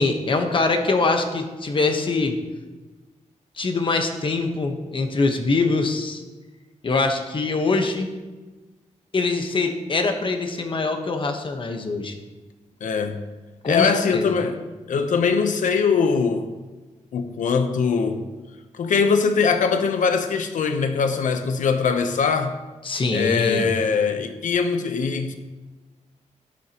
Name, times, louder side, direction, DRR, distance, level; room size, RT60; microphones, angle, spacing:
voice 1, 0.0-2.4 3.6-6.2 6.8-8.1 9.1-12.1 13.6-14.3 22.8-23.7, left 3 dB, 40° left, 5 dB, 1.2 m, -23 dB
voice 2, 12.8-13.2 13.6-14.6 14.9-16.5 17.1-18.2 18.7-22.6 23.1-25.3, left 5 dB, 85° left, 8 dB, 0.9 m, -22 dB
12.5 x 9.9 x 3.0 m, 1.2 s
wide cardioid pair, 120°, 13 cm